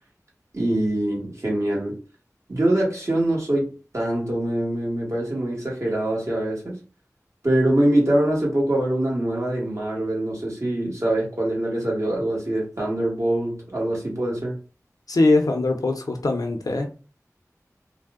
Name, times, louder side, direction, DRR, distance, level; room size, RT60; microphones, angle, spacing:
voice 1, 0.5-2.0 2.5-6.8 7.4-14.6, right 1 dB, 55° right, 1.3 m, -24 dB
voice 2, 15.1-16.9, left 2 dB, 80° left, 0.5 m, -21 dB
2.6 x 2.0 x 3.5 m
wide cardioid pair, 45°, 6 cm